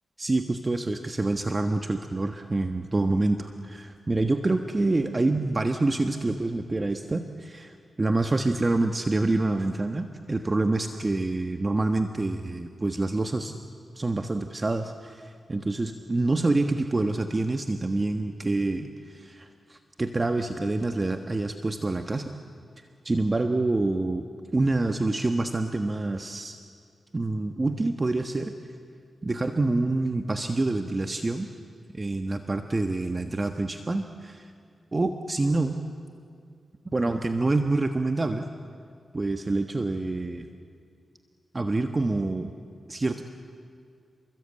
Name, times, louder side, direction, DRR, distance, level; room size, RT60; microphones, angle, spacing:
voice 1, 0.2-13.5 14.0-22.3 23.0-24.2 24.5-26.6 27.1-28.5 29.2-31.5 31.9-34.5 34.9-35.8 36.9-38.5 39.1-40.5 41.5-42.5 42.9-43.2, right 2 dB, 30° right, 6 dB, 1.4 m, -27 dB
29.5 x 22.0 x 8.8 m, 2.3 s
cardioid pair, 75°, 0 cm